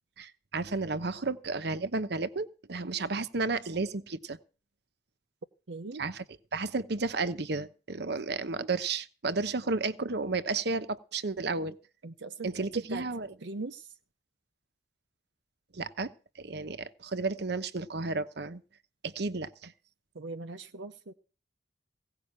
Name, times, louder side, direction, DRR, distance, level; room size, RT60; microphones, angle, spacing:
voice 1, 0.2-4.4 6.0-6.2 6.5-11.8 12.4-13.3 15.7-16.1 16.4-18.6 19.0-19.7, right 3 dB, 65° right, 12 dB, 1.0 m, -32 dB
voice 2, 5.7-6.0 12.0-13.0 13.4-13.8 20.1-21.1, right 3 dB, 85° right, 9 dB, 0.8 m, -39 dB
17.0 x 5.7 x 8.7 m, 0.37 s
head